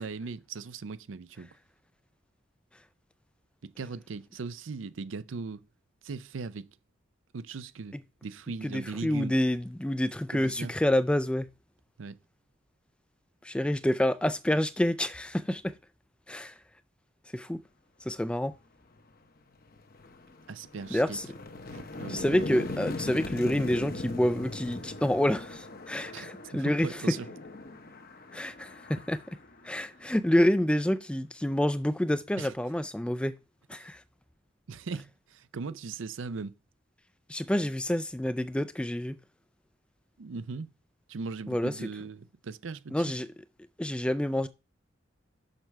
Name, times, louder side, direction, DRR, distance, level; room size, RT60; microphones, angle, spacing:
voice 1, 0.0-1.5 3.6-5.7 6.0-6.7 7.3-8.0 8.2-9.3 10.3-10.7 12.0-12.2 20.5-21.2 21.7-22.3 26.1-27.3 32.4-32.5 33.8-33.9 34.7-36.5 40.2-40.7 41.1-43.1, right 4 dB, 75° right, 0.5 m, -39 dB
voice 2, 8.6-11.5 13.4-15.7 16.3-16.5 17.3-17.6 18.0-18.5 20.9-21.3 22.1-26.9 28.3-29.2 29.6-33.4 33.7-34.0 37.3-39.2 41.5-41.7 42.9-43.3 43.8-44.5, left 1 dB, 5° left, 0.3 m, -28 dB
sound 1, 19.0-19.1 19.5-30.3, left 2 dB, 50° left, 0.9 m, -40 dB
6.6 x 5.9 x 4.5 m
head